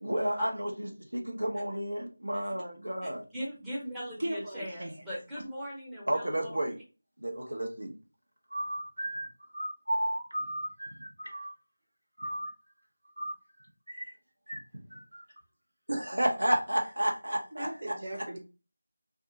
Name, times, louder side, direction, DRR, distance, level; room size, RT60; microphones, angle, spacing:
voice 1, 0.0-3.2 6.1-6.8 7.2-7.9 8.5-11.5 12.2-12.5 13.2-13.3 13.9-14.0 14.5-14.6 14.9-15.2 15.9-17.7, right 1 dB, 90° right, 0.8 m, -32 dB
voice 2, 3.0-6.5, equal, 5° right, 0.8 m, -39 dB
voice 3, 4.2-5.0 5.4-5.5 17.5-18.4, right 1 dB, 55° right, 0.9 m, -37 dB
2.7 x 2.3 x 2.7 m
figure-of-eight pair, 170°, 0 cm